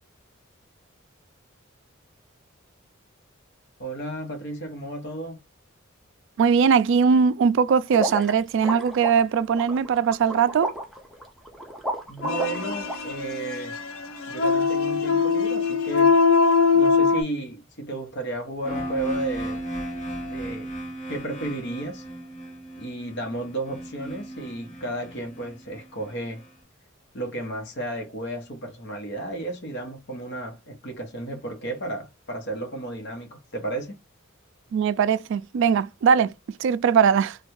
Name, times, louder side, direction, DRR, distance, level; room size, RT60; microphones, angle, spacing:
voice 1, 3.8-5.4 12.1-13.8 14.3-16.2 16.7-19.6 20.2-20.7 21.1-22.0 22.8-26.4 27.1-34.0, right 2 dB, 60° left, 1.0 m, -33 dB
voice 2, 6.4-10.7 34.7-36.3 36.6-37.4, right 6 dB, 65° right, 0.3 m, -20 dB
sound 1, 7.9-13.0, equal, ahead, 0.6 m, -32 dB
sound 2, 12.2-17.2, left 5 dB, 80° left, 0.5 m, -21 dB
sound 3, 18.6-26.5, right 1 dB, 40° left, 1.4 m, -35 dB
3.3 x 2.3 x 3.1 m
head